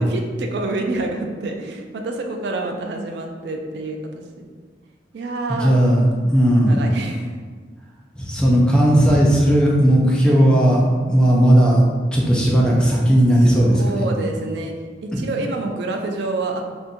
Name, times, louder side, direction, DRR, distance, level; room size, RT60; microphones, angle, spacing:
voice 1, 0.0-4.4 5.1-5.7 6.6-7.3 13.5-14.7 15.0-16.6, right 2 dB, 75° right, 3 dB, 0.4 m, -27 dB
voice 2, 5.5-6.8 8.2-10.8 11.1-11.8 12.1-14.0, equal, 5° left, -4 dB, 0.4 m, -16 dB
2.7 x 2.5 x 3.6 m, 1.5 s
head